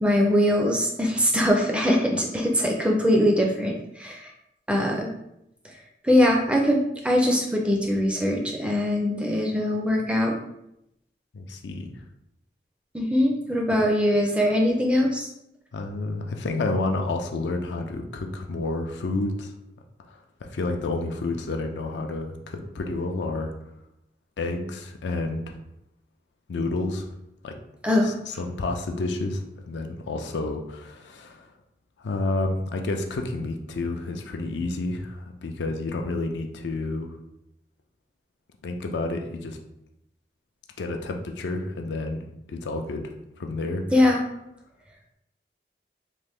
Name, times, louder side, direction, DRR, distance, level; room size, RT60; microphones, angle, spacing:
voice 1, 0.0-4.3 4.7-5.1 6.0-10.3 12.9-15.3 27.8-28.1 43.9-44.2, left 1 dB, 5° right, 0 dB, 0.4 m, -22 dB
voice 2, 11.3-11.9 15.7-19.5 20.4-23.5 24.4-25.6 26.5-27.1 27.4-27.5 28.0-31.5 32.0-37.1 38.6-39.6 40.8-42.2 42.5-44.2, left 2 dB, 90° left, 4 dB, 0.4 m, -30 dB
3.1 x 2.5 x 3.4 m, 0.82 s
head